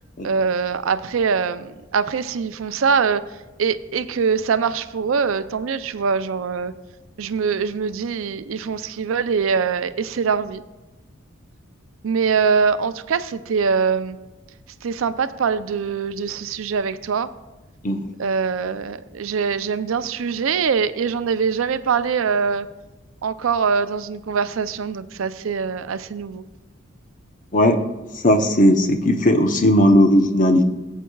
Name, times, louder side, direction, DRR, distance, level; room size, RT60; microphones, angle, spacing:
voice 1, 0.2-3.2 3.6-6.7 7.2-10.6 12.0-14.2 14.8-17.3 18.2-22.7 23.2-26.4, right 5 dB, 75° right, 13 dB, 0.4 m, -23 dB
voice 2, 27.5-27.8 28.2-30.6, left 1 dB, 40° left, 6 dB, 0.7 m, -16 dB
16.5 x 8.2 x 2.3 m, 1.1 s
head